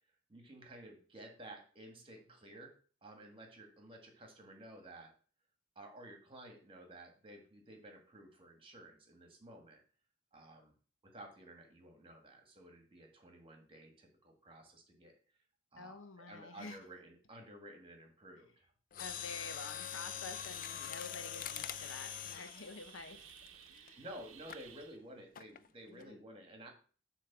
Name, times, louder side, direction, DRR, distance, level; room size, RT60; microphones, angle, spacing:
voice 1, 0.3-2.7 3.0-5.1 5.7-9.8 10.3-10.7 11.0-15.1 15.7-18.6 23.7-26.7, right 1 dB, 25° right, 3 dB, 1.7 m, -53 dB
voice 2, 15.8-16.9 19.0-23.3 23.7-24.0 25.9-26.2, left 3 dB, 70° left, 9 dB, 0.9 m, -49 dB
Mechanisms, 18.9-23.9 24.5-24.7 25.4-25.7 26.0-26.1, left 10 dB, 45° left, 0.4 m, -44 dB
sound 1, 19.0-25.0, right 9 dB, 80° right, 0.7 m, -56 dB
7.5 x 3.3 x 5.9 m, 0.40 s
head